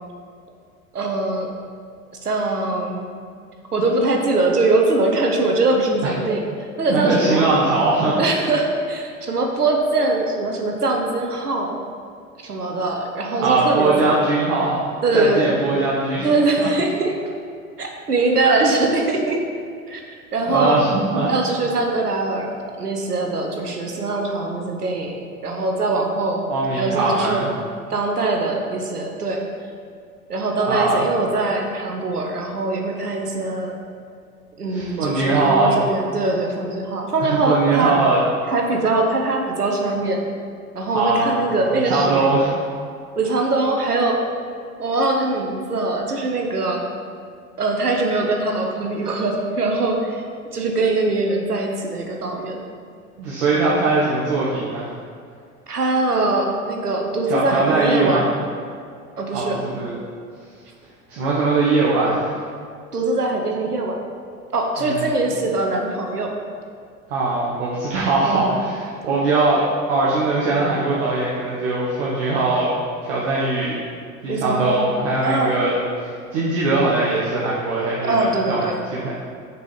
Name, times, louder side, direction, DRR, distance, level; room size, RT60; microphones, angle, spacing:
voice 1, 0.9-1.5 2.2-3.0 3.7-6.5 6.8-7.5 8.2-11.8 12.4-14.2 15.0-15.6 16.2-17.1 17.8-19.4 19.9-20.0 20.3-20.8 21.3-22.5 22.8-25.1 25.4-26.4 26.8-27.5 27.9-29.4 30.3-33.8 34.6-38.0 38.5-40.2 40.7-42.3 43.2-44.2 44.8-46.8 47.6-50.2 50.5-52.6 55.7-58.3 59.2-59.6 62.9-64.0 64.5-66.3 68.2-68.6 74.3-74.9 75.2-75.6 78.0-78.8, right 2 dB, 85° right, 1 dB, 0.9 m, -22 dB
voice 2, 6.9-8.4 13.3-14.9 15.1-16.3 16.6-16.7 20.5-21.3 26.5-27.5 30.6-30.9 34.7-35.8 37.2-38.2 40.9-41.4 41.7-42.5 53.2-54.8 57.3-58.2 59.3-59.9 61.1-62.3 64.8-65.2 67.1-72.7 73.0-73.8 74.2-79.1, right 3 dB, 55° right, -6 dB, 1.4 m, -21 dB
6.1 x 4.7 x 5.4 m, 2.3 s
figure-of-eight pair, 80°, 45 cm